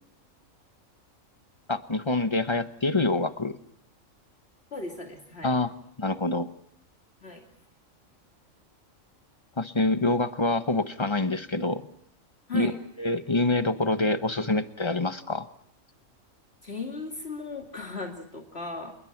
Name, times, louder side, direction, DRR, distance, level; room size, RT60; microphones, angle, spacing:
voice 1, 1.7-3.6 5.4-6.5 9.6-11.9 12.5-12.7 13.0-15.5, left 2 dB, 25° left, 10 dB, 1.1 m, -26 dB
voice 2, 4.7-5.6 7.2-7.5 12.5-12.7 16.6-18.9, left 3 dB, 50° left, 2 dB, 2.8 m, -37 dB
29.0 x 21.5 x 6.0 m, 0.65 s
omnidirectional pair, 1.4 m